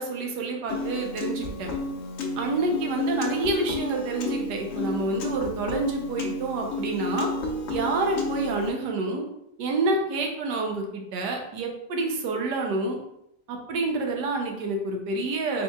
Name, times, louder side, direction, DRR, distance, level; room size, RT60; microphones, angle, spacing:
voice 1, 0.0-1.7 2.3-7.3 7.7-9.2 9.6-13.0 13.5-15.6, right 2 dB, 85° right, 2 dB, 1.3 m, -28 dB
Piano, 0.7-8.7, left 2 dB, 65° left, 0.7 m, -31 dB
4.0 x 3.9 x 2.3 m, 0.79 s
omnidirectional pair, 1.8 m